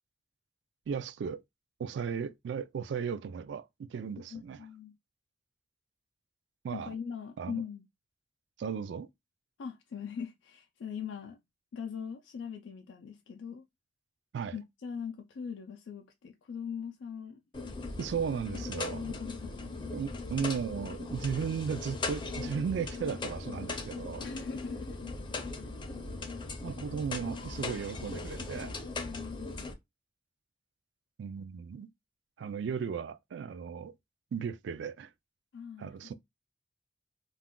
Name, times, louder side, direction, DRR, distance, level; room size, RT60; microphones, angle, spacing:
voice 1, 0.9-1.4 1.8-4.6 6.6-6.9 7.4-7.6 8.6-9.1 14.3-14.6 18.0-19.1 19.9-24.2 26.6-28.7 31.2-31.9 32.4-33.9 34.3-35.1 35.8-36.1, right 6 dB, 70° right, 0.3 m, -36 dB
voice 2, 4.3-5.0 6.7-7.8 9.6-11.4 11.7-13.7 14.5-17.4 18.5-19.9 24.2-25.0 29.0-29.7 35.5-36.1, left 6 dB, 90° left, 0.4 m, -41 dB
sound 1, 17.5-29.7, left 3 dB, 25° left, 0.5 m, -39 dB
2.4 x 2.2 x 3.5 m
head